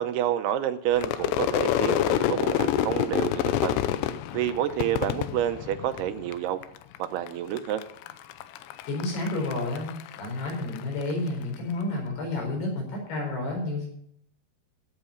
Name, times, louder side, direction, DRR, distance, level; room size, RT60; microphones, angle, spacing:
voice 1, 0.0-3.8 4.3-6.6 7.0-7.8, right 11 dB, 80° right, 9 dB, 2.7 m, -29 dB
Crowd / Fireworks, 0.9-6.3 6.6-7.3 7.6-11.1, left 11 dB, 90° left, 3.0 m, -27 dB
voice 2, 8.9-9.9 10.1-13.9, left 2 dB, 70° left, 1 dB, 6.5 m, -30 dB
15.5 x 8.3 x 5.2 m, 0.70 s
omnidirectional pair, 4.9 m